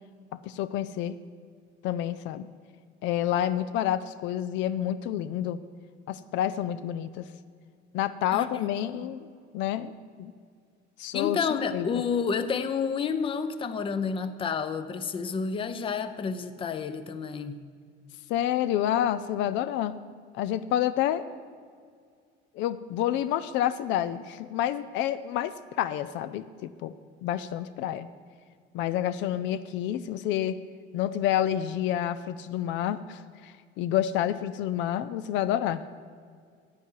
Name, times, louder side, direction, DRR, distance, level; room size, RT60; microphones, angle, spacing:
voice 1, 0.4-1.2 1.8-2.5 3.0-5.6 6.1-7.3 7.9-9.3 9.5-9.9 10.2-10.3 11.0-11.4 11.7-11.9 18.3-20.0 20.3-21.2 22.6-26.9 27.2-28.1 28.7-30.6 30.9-35.8, left 11 dB, 75° left, 13 dB, 0.5 m, -28 dB
voice 2, 8.3-8.7 9.0-9.1 11.1-17.6, left 6 dB, 25° left, 11 dB, 0.6 m, -30 dB
15.0 x 9.2 x 4.7 m, 2.1 s
cardioid pair, 140°, 19 cm